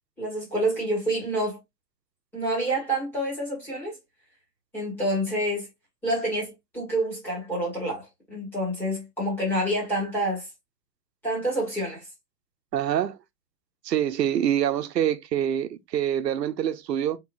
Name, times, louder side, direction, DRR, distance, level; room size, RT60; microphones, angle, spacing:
voice 1, 0.2-1.6 2.3-4.0 4.7-5.7 6.0-8.0 8.3-10.5 11.2-12.0, right 1 dB, 5° left, 1.7 m, -27 dB
voice 2, 12.7-13.2 13.8-17.2, right 10 dB, 80° right, 0.9 m, -25 dB
4.5 x 3.9 x 2.5 m
hypercardioid pair, 175°, 49 cm